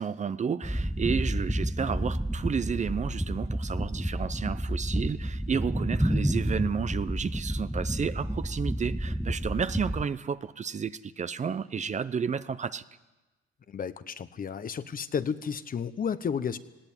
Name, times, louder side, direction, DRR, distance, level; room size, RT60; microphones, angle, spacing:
voice 1, 0.0-12.8, right 6 dB, 35° right, 0.7 m, -32 dB
sound 1, 0.6-10.0, equal, ahead, 0.6 m, -30 dB
voice 2, 13.7-16.6, left 7 dB, 45° left, 1.0 m, -32 dB
19.0 x 17.0 x 9.0 m
cardioid pair, 90°, 20 cm